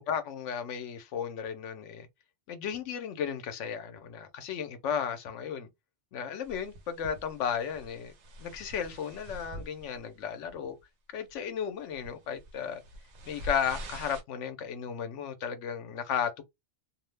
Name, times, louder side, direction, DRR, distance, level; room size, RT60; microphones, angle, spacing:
voice 1, 0.0-2.1 2.5-5.7 6.1-8.1 8.4-10.8 11.1-12.8 13.3-16.4, left 7 dB, 85° left, 1.0 m, -34 dB
sound 1, 6.4-10.1 10.4-10.8 11.3-11.4 11.9-14.2, right 1 dB, 75° right, 0.9 m, -45 dB
2.6 x 2.1 x 3.1 m
omnidirectional pair, 1.2 m